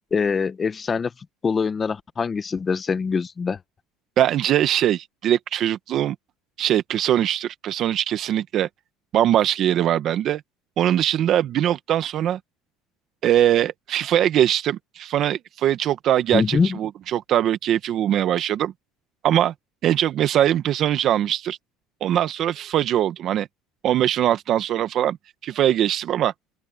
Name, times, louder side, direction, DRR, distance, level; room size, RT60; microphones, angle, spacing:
voice 1, 0.1-1.1 1.4-3.6 16.3-16.8, left 5 dB, 20° left, 1.1 m, -23 dB
voice 2, 4.2-6.1 6.6-8.7 9.1-10.4 10.8-12.4 13.2-18.7 19.2-19.5 19.8-21.6 22.0-23.5 23.8-25.2 25.4-26.3, right 11 dB, 45° right, 1.0 m, -21 dB
open air
cardioid pair, 135°, 0 cm